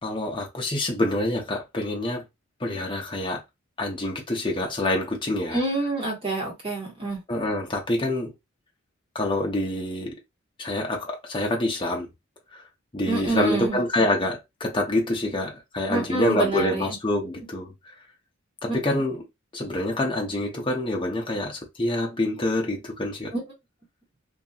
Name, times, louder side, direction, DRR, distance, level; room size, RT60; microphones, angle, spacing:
voice 1, 0.0-2.2 2.6-3.4 3.8-5.6 7.3-8.3 9.1-10.2 10.6-12.1 12.9-17.7 18.6-19.2 19.5-23.3, left 1 dB, 25° left, 0.7 m, -26 dB
voice 2, 5.5-7.2 13.1-13.8 15.9-17.0 18.7-18.8 23.3-23.4, right 3 dB, 25° right, 1.3 m, -27 dB
2.7 x 2.6 x 2.4 m
head